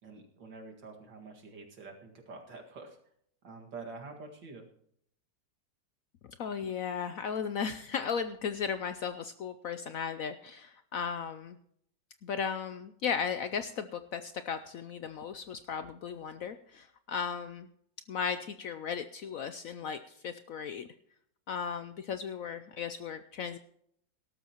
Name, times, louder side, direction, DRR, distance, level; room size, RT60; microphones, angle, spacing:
voice 1, 0.0-3.0 3.4-4.6, right 3 dB, 80° right, 2 dB, 2.6 m, -47 dB
voice 2, 6.4-11.6 12.2-17.7 18.1-20.9 21.5-23.6, left 6 dB, 70° left, 11 dB, 0.8 m, -36 dB
18.0 x 12.5 x 3.0 m, 0.70 s
omnidirectional pair, 1.9 m